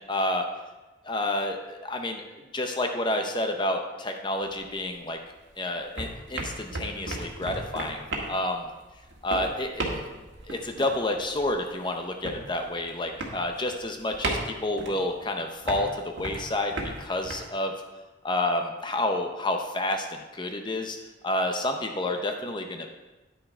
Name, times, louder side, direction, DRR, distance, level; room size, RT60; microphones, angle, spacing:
voice 1, 0.1-0.5 1.0-5.2 5.6-8.6 9.2-10.0 10.5-17.7 18.2-20.1 20.3-21.0 21.2-22.9, left 1 dB, 25° left, 4 dB, 0.6 m, -29 dB
sound 1, 4.4-5.5 5.8-17.3, right 2 dB, 65° right, 1.7 m, -36 dB
9.9 x 6.5 x 4.4 m, 1.2 s
head